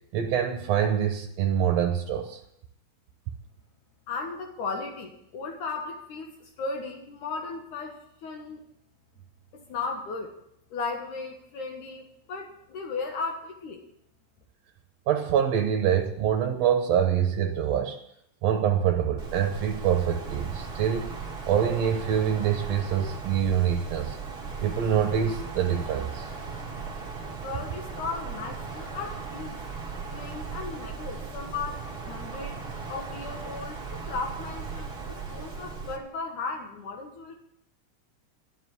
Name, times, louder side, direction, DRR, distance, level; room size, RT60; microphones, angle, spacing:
voice 1, 0.1-2.4 15.1-18.0 18.4-21.1 21.5-24.2 24.6-26.3, right 9 dB, 65° right, 4 dB, 2.0 m, -25 dB
voice 2, 4.1-8.6 9.5-10.3 10.7-13.8 27.4-29.6 30.1-32.6 32.9-37.4, left 4 dB, 75° left, 2 dB, 2.9 m, -36 dB
Wind, 19.2-36.0, right 5 dB, 25° right, 1.5 m, -37 dB
11.5 x 7.3 x 9.6 m, 0.74 s
omnidirectional pair, 3.6 m